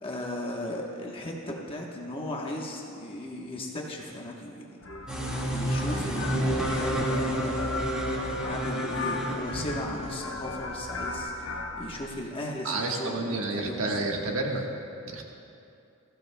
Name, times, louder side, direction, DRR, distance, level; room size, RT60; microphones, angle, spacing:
voice 1, 0.0-4.8 5.4-7.8 8.4-14.2, left 1 dB, 25° left, -2 dB, 1.1 m, -36 dB
sound 1, 4.8-12.1, left 2 dB, 65° left, 1.0 m, -37 dB
sound 2, 5.1-10.4, right 1 dB, 5° right, 1.8 m, -30 dB
voice 2, 12.6-14.7 15.1-15.3, right 2 dB, 75° right, 0 dB, 1.4 m, -30 dB
21.0 x 15.0 x 2.2 m, 2.6 s
head